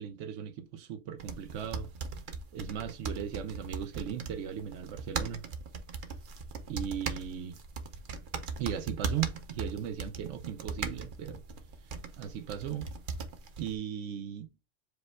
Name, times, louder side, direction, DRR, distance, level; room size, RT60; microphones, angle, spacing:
voice 1, 0.0-1.9 2.5-5.4 6.7-7.6 8.6-11.4 11.8-12.9 13.6-14.5, right 9 dB, 85° right, 0.9 m, -37 dB
sound 1, 1.2-13.7, right 4 dB, 50° right, 0.7 m, -39 dB
4.9 x 2.1 x 4.4 m
omnidirectional pair, 1.3 m